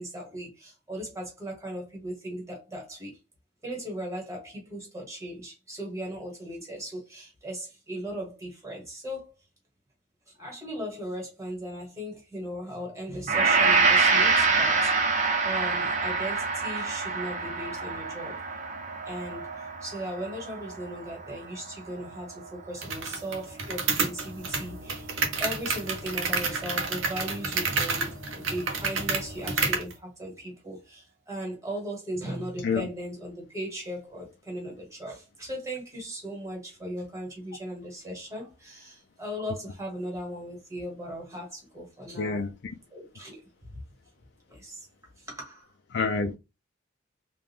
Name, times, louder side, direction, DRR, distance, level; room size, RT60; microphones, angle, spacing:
voice 1, 0.0-3.1 3.6-9.3 10.3-14.9 15.4-18.4 19.0-25.1 25.4-42.4 42.9-43.4 44.5-44.9 45.2-45.7, equal, 15° right, 1.6 m, -37 dB
Gong, 13.3-21.7 22.0-22.2, right 4 dB, 40° right, 0.7 m, -26 dB
sound 1, 22.8-29.9, right 4 dB, 85° right, 0.9 m, -30 dB
voice 2, 42.2-42.7 45.9-46.4, left 4 dB, 60° left, 0.4 m, -28 dB
3.4 x 2.5 x 3.6 m
head